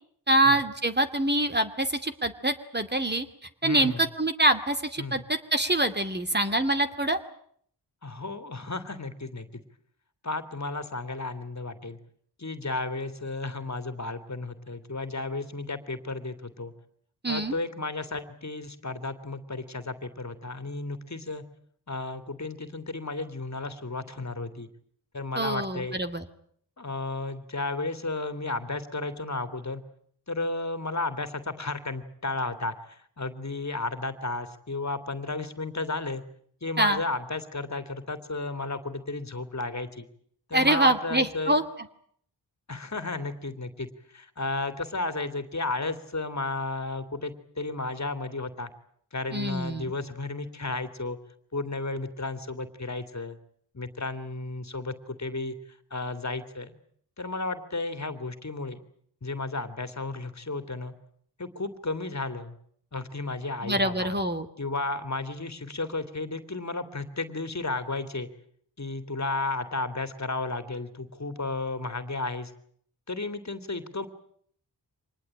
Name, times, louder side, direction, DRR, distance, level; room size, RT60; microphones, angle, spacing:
voice 1, 0.3-3.3 3.6-7.2 17.2-17.6 25.4-26.2 36.8-37.0 40.5-41.6 49.3-49.9 63.6-64.5, right 1 dB, 25° right, 8 dB, 2.5 m, -25 dB
voice 2, 3.6-4.0 5.0-5.2 8.0-9.5 10.2-12.0 12.4-16.7 17.3-21.4 21.9-24.7 25.1-26.0 26.8-29.8 30.3-36.2 36.6-40.1 40.5-41.6 42.7-48.7 49.1-51.2 51.5-53.4 53.7-56.7 57.2-58.8 59.2-60.9 61.4-62.6 62.9-64.1 64.6-68.3 68.8-72.5 73.1-74.1, left 3 dB, 40° left, 10 dB, 2.7 m, -33 dB
25.0 x 20.0 x 8.9 m, 0.64 s
cardioid pair, 45°, 41 cm